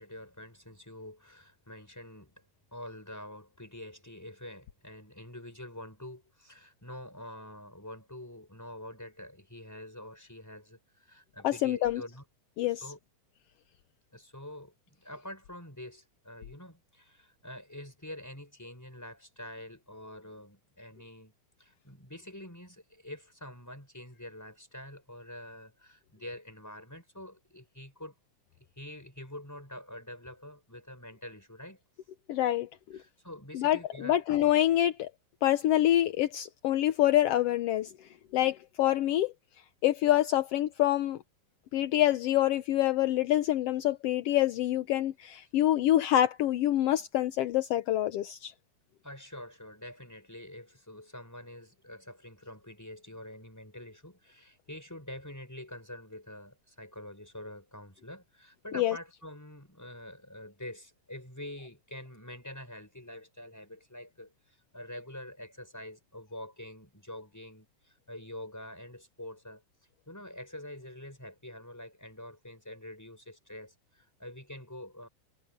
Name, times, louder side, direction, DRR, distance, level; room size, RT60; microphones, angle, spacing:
voice 1, 0.0-2.5 2.7-12.2 12.7-13.0 14.1-21.3 21.6-28.1 28.8-31.8 32.9-34.2 49.0-69.6 70.1-75.1, left 1 dB, 5° left, 5.5 m, -46 dB
voice 2, 11.4-12.0 12.6-12.8 32.3-33.0 33.5-35.1 35.4-37.9 38.3-39.3 39.8-41.2 41.7-48.5 58.7-58.9, left 13 dB, 75° left, 1.5 m, -26 dB
omnidirectional pair, 3.4 m